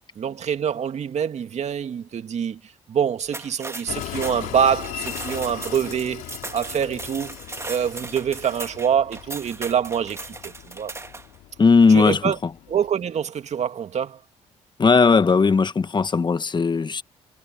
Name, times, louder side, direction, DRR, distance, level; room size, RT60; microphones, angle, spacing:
voice 1, 0.2-2.6 2.9-6.3 6.5-7.4 7.7-10.9 11.9-12.4 12.7-14.2, right 8 dB, 55° right, 2.1 m, -25 dB
sound 1, 3.2-11.3, right 2 dB, 20° right, 2.0 m, -37 dB
Train, 3.9-12.9, left 16 dB, 85° left, 3.8 m, -39 dB
voice 2, 11.6-12.2 14.8-17.0, left 4 dB, 35° left, 1.2 m, -17 dB
supercardioid pair, 65°, 14 cm